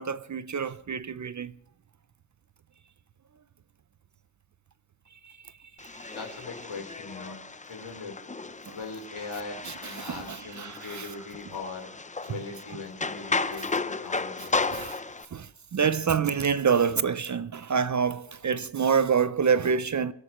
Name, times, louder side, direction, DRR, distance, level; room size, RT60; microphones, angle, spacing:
voice 1, 0.0-1.5 5.2-5.3 5.8-6.1 8.7-8.8 9.7-11.1 14.4-15.0 15.3-20.1, right 6 dB, 40° right, 0.4 m, -27 dB
sound 1, 5.8-15.3, left 3 dB, 15° left, 0.5 m, -34 dB
voice 2, 6.1-7.4 7.7-8.2 8.7-11.9 12.2-14.8, left 4 dB, 80° left, 3.9 m, -40 dB
27.5 x 12.5 x 3.0 m
wide cardioid pair, 150°, 48 cm